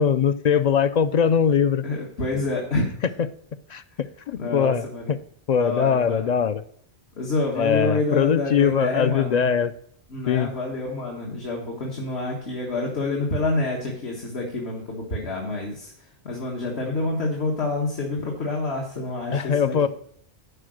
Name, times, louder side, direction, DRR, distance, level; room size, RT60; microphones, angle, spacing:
voice 1, 0.0-1.8 3.7-3.8 4.3-5.2 5.5-6.6 7.6-9.7 10.3-10.5 19.3-19.9, left 7 dB, 55° left, 13 dB, 0.5 m, -21 dB
voice 2, 1.8-2.9 4.4-5.1 5.6-6.3 7.2-9.5 10.1-19.9, left 2 dB, 70° left, -2 dB, 1.8 m, -28 dB
11.0 x 4.8 x 6.4 m, 0.63 s
omnidirectional pair, 1.1 m